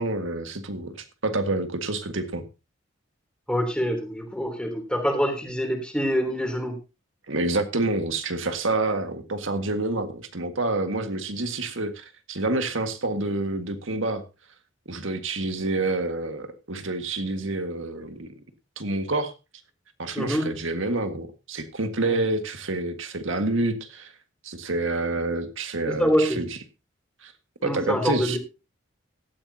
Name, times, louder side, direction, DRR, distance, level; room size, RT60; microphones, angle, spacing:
voice 1, 0.0-2.4 7.3-14.2 14.9-18.3 18.8-19.3 20.0-24.1 24.4-26.5 27.2-27.3 27.6-28.4, right 2 dB, 80° right, 7 dB, 1.8 m, -28 dB
voice 2, 3.5-6.7 20.1-20.5 26.0-26.4 27.6-28.4, equal, 5° left, 3 dB, 3.2 m, -25 dB
17.0 x 13.0 x 2.8 m, 0.30 s
head